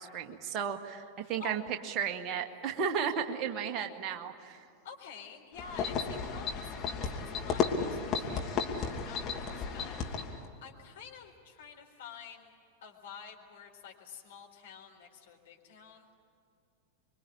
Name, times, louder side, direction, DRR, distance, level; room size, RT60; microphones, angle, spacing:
voice 1, 0.0-4.6, right 7 dB, 35° right, 3 dB, 1.8 m, -34 dB
voice 2, 1.2-1.6 4.8-12.5 12.8-16.1, left 7 dB, 60° left, 2 dB, 4.1 m, -50 dB
sound 1, 5.6-10.5, left 5 dB, 30° left, 2.8 m, -33 dB
26.5 x 23.5 x 8.8 m, 2.5 s
figure-of-eight pair, 90°, 0 cm